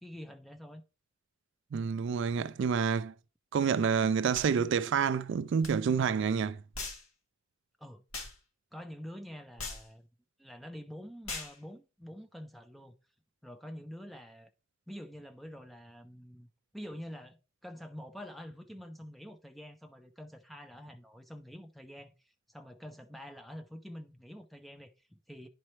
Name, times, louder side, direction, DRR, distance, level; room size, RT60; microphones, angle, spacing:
voice 1, 0.0-0.8 7.8-8.0 8.7-10.1 10.4-12.9 13.4-14.5 14.9-16.5 16.7-25.5, equal, ahead, 0.6 m, -47 dB
voice 2, 1.7-3.1 3.5-6.6, right 6 dB, 60° right, 0.3 m, -28 dB
sound 1, 4.3-4.5 5.6-5.7 6.7-7.1 8.1-8.4 9.6-9.9 11.3-11.6, left 3 dB, 80° left, 2.1 m, -39 dB
10.5 x 4.2 x 3.2 m
head